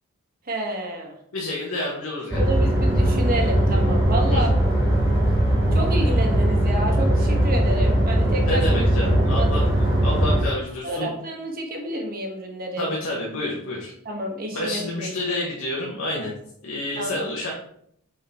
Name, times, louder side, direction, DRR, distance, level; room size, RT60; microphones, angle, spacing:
voice 1, 0.5-1.1 2.4-4.5 5.7-8.6 9.4-9.5 10.8-12.9 14.0-15.4 17.0-17.1, right 1 dB, 45° right, 1 dB, 1.4 m, -29 dB
voice 2, 1.3-2.5 4.3-4.4 8.4-9.7 10.0-11.1 12.8-13.9 14.5-16.3 16.6-17.5, left 1 dB, 80° left, -4 dB, 1.3 m, -28 dB
sound 1, 2.3-10.4, right 1 dB, 15° right, 1.9 m, -20 dB
6.3 x 3.9 x 4.2 m, 0.69 s
head